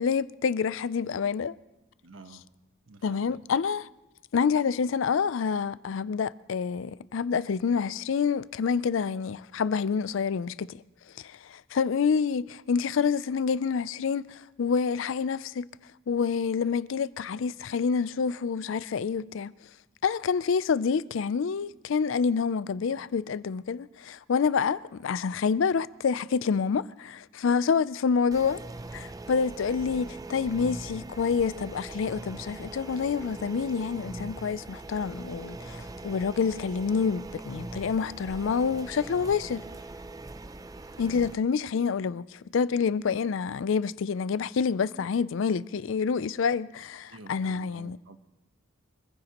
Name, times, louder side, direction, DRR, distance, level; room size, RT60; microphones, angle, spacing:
voice 1, 0.0-1.5 3.0-3.9 4.3-10.8 11.2-15.7 16.1-19.5 20.0-28.6 28.9-39.6 41.0-48.0, left 6 dB, 70° left, 0.4 m, -27 dB
voice 2, 2.0-2.4 2.9-3.4 47.1-48.2, right 2 dB, 75° right, 1.1 m, -49 dB
sound 1, 28.3-41.3, right 2 dB, 20° right, 0.4 m, -41 dB
25.0 x 15.0 x 3.0 m
head